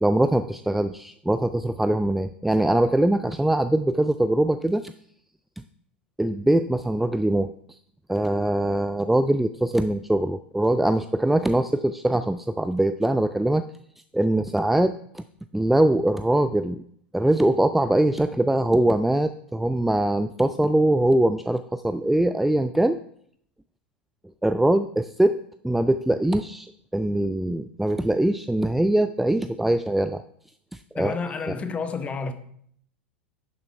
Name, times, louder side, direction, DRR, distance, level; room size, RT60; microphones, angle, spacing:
voice 1, 0.0-4.9 6.2-7.8 8.1-13.6 14.1-15.2 15.5-16.8 17.1-23.0 24.4-25.4 25.6-30.2 30.7-31.1 31.5-31.6, right 1 dB, 5° right, 0.3 m, -22 dB
voice 2, 31.0-32.3, left 4 dB, 20° left, 0.9 m, -30 dB
10.5 x 6.6 x 3.4 m
figure-of-eight pair, 85°, 6 cm